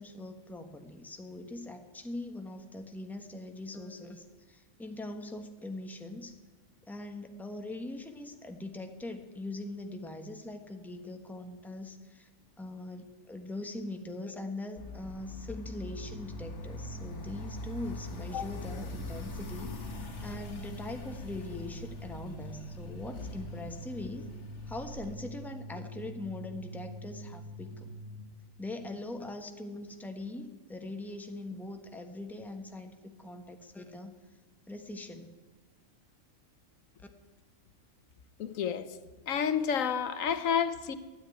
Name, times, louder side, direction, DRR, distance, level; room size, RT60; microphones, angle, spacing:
voice 1, 0.0-6.4 6.8-12.3 12.6-24.3 24.7-27.9 28.6-34.1 34.7-35.3 37.0-37.1, left 2 dB, ahead, 5 dB, 1.1 m, -42 dB
sound 1, 14.8-25.1, left 2 dB, 60° left, 1.8 m, -44 dB
sound 2, 16.0-28.2, right 1 dB, 70° right, 4.9 m, -45 dB
voice 2, 38.4-38.9 39.3-41.0, left 7 dB, 85° left, 12 dB, 1.3 m, -30 dB
13.0 x 9.8 x 9.6 m, 1.3 s
omnidirectional pair, 1.3 m